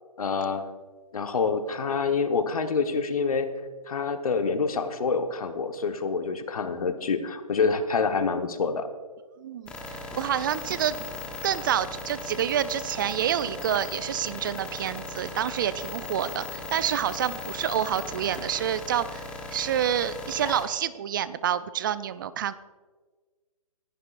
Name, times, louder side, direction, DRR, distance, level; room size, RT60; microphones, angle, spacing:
voice 1, 0.2-0.7 1.1-3.5 3.9-8.9, left 5 dB, 65° left, 7 dB, 1.2 m, -27 dB
voice 2, 9.4-10.9 11.4-19.2 19.5-22.5, right 9 dB, 35° right, 16 dB, 0.4 m, -28 dB
sound 1, 9.7-20.6, left 2 dB, 5° left, 1.0 m, -38 dB
20.0 x 11.0 x 2.5 m, 1.4 s
hypercardioid pair, 145°, 19 cm